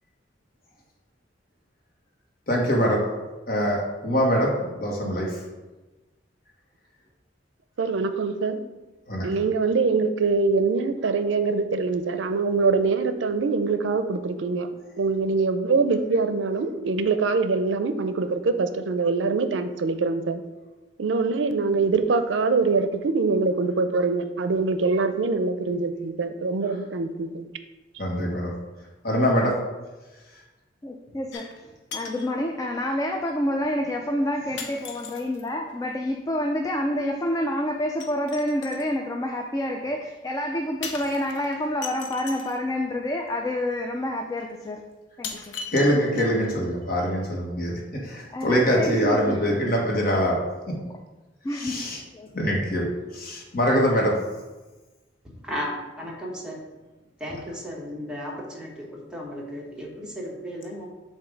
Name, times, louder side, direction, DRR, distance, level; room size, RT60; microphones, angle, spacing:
voice 1, 2.5-3.0 3.5-5.4 9.1-9.3 28.0-28.5 29.0-29.5 45.7-50.4 50.7-50.8 51.5-52.0 52.3-52.9 53.1-54.2, equal, 55° left, -1 dB, 1.3 m, -23 dB
voice 2, 7.8-8.6 9.2-14.7 15.0-20.4 21.0-27.5, right 4 dB, 85° right, 9 dB, 0.4 m, -24 dB
voice 3, 30.8-44.8 45.2-45.5 48.3-49.4 51.4-51.9 52.1-52.6, left 1 dB, 20° left, 3 dB, 0.4 m, -28 dB
sound 1, 31.3-31.6 31.9-32.3 33.3-33.4 34.6-35.5 38.0-38.9 40.8-42.6 43.7-43.8 44.4-44.5 45.2-46.5 46.8-46.9, left 5 dB, 70° left, 0.7 m, -38 dB
voice 4, 55.2-56.6 57.2-60.9, equal, 5° right, -3 dB, 1.0 m, -35 dB
7.1 x 2.7 x 5.0 m, 1.2 s
head